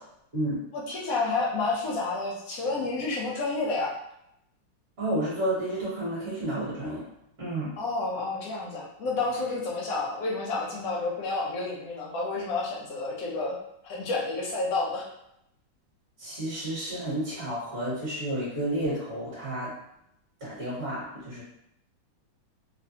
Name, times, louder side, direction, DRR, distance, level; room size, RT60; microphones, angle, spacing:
voice 1, 0.7-3.9 7.8-13.6 13.8-15.1, left 3 dB, 70° left, -3 dB, 0.8 m, -30 dB
voice 2, 5.0-7.0 7.4-7.7 16.2-19.7 20.4-21.4, right 1 dB, 45° right, -9 dB, 1.3 m, -31 dB
3.3 x 2.1 x 2.7 m, 0.80 s
omnidirectional pair, 2.2 m